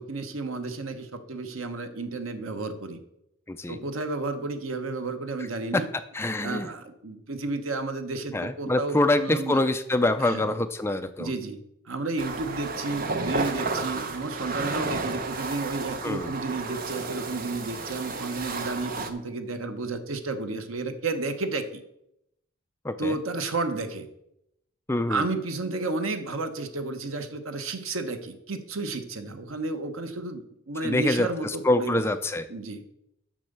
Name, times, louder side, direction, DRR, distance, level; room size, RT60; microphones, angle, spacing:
voice 1, 0.0-3.0 3.7-5.9 6.4-9.6 10.2-10.5 11.2-11.6 11.8-21.8 23.0-24.1 25.1-32.0 32.5-32.8, right 3 dB, 90° right, 8 dB, 1.1 m, -32 dB
voice 2, 3.5-3.8 5.7-5.8 6.1-6.7 8.3-11.3 16.0-16.3 22.8-23.2 24.9-25.3 30.8-32.5, left 2 dB, 10° left, 9 dB, 0.4 m, -25 dB
sound 1, 12.2-19.1, right 3 dB, 45° right, 0.8 m, -32 dB
7.5 x 6.3 x 6.7 m, 0.80 s
head